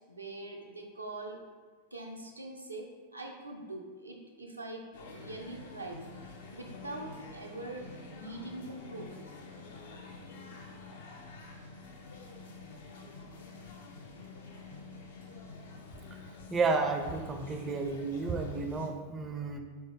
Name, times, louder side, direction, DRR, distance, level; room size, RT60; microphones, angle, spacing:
voice 1, 0.1-1.4 1.9-4.9 5.1-6.0 6.5-7.9 8.1-9.3, right 2 dB, 80° right, 1 dB, 0.5 m, -43 dB
sound 1, 4.9-18.9, left 3 dB, 60° left, 0.5 m, -48 dB
voice 2, 16.5-19.6, right 4 dB, 20° right, 4 dB, 0.4 m, -31 dB
3.9 x 3.4 x 3.2 m, 1.4 s
figure-of-eight pair, 90°, 0 cm